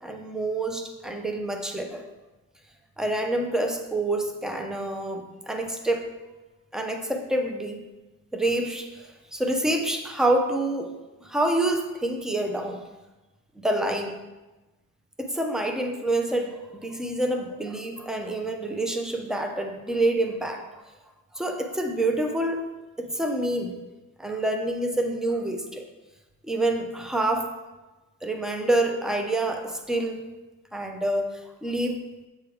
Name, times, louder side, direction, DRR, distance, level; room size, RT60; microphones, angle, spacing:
voice 1, 0.0-2.0 3.0-6.0 6.7-7.8 8.3-10.9 11.2-12.8 13.6-14.1 15.2-20.6 21.3-22.6 23.0-23.8 24.2-25.8 26.4-27.5 28.2-30.2 30.7-32.0, right 1 dB, ahead, 4 dB, 0.4 m, -27 dB
7.8 x 3.3 x 4.7 m, 1.1 s
cardioid pair, 170°, 32 cm